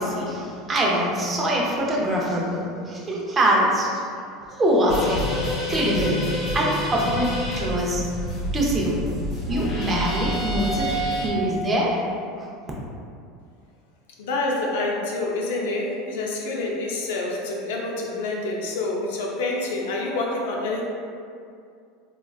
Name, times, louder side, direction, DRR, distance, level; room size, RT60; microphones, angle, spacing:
voice 1, 0.0-3.9 4.5-5.2 5.7-8.0 8.5-9.1 9.5-11.9, right 1 dB, 20° right, -3 dB, 0.6 m, -23 dB
sound 1, 4.9-11.3, equal, 35° left, 1.0 m, -28 dB
voice 2, 14.2-20.8, left 2 dB, 85° left, -1 dB, 0.5 m, -27 dB
3.5 x 2.4 x 2.3 m, 2.4 s
supercardioid pair, 135°, 0 cm